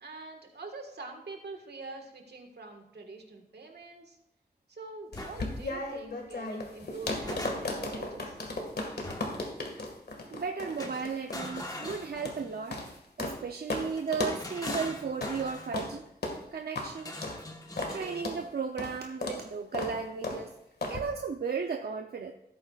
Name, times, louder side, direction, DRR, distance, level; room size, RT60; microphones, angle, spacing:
voice 1, 0.0-4.2 4.7-8.4, right 3 dB, 85° right, 3 dB, 1.7 m, -45 dB
sound 1, 5.1-13.4 13.7-13.9 14.1-14.4 14.7-14.9 15.2-15.4 15.7-15.9 16.2-16.4 16.8-16.9 17.2-17.4 17.8-18.0 18.2-18.4 18.8-18.9 19.2-19.4 19.7-19.9 20.2-20.4 20.8-21.0, left 2 dB, 75° left, 1.9 m, -35 dB
sound 2, 5.1-5.4 6.8-7.9 9.0-9.5 10.8-12.6 13.9-15.7 17.0-18.3, left 1 dB, 20° left, 1.2 m, -42 dB
voice 2, 10.3-12.8 13.2-16.0 16.5-17.1 17.9-20.5 20.9-22.3, right 5 dB, 70° right, 4 dB, 0.7 m, -35 dB
16.5 x 8.7 x 2.4 m, 0.82 s
wide cardioid pair, 115°, 17 cm